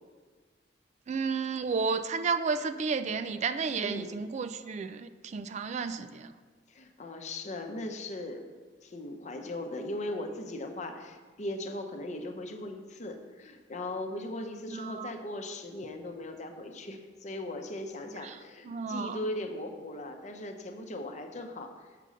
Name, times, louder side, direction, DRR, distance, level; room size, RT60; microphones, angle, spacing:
voice 1, 1.1-6.3 14.7-15.1 18.2-18.4 18.6-19.2, right 5 dB, 40° right, 11 dB, 0.3 m, -32 dB
voice 2, 3.8-4.1 6.7-8.5 8.8-21.7, left 1 dB, 40° left, 5 dB, 0.8 m, -38 dB
6.8 x 5.2 x 6.2 m, 1.5 s
head